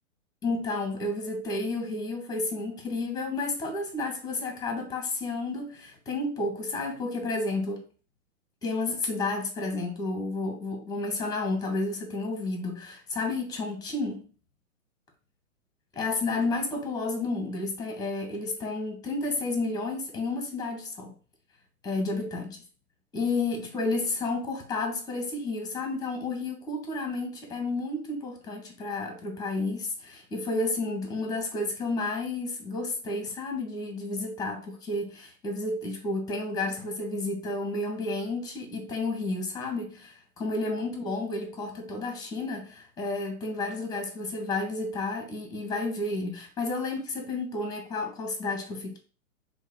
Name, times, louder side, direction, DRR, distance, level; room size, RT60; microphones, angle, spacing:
voice 1, 0.4-7.8 8.6-14.3 15.9-21.1 21.8-22.6 23.1-49.0, left 2 dB, 10° left, 1.7 m, -31 dB
4.6 x 3.9 x 5.4 m
figure-of-eight pair, 125°, 43 cm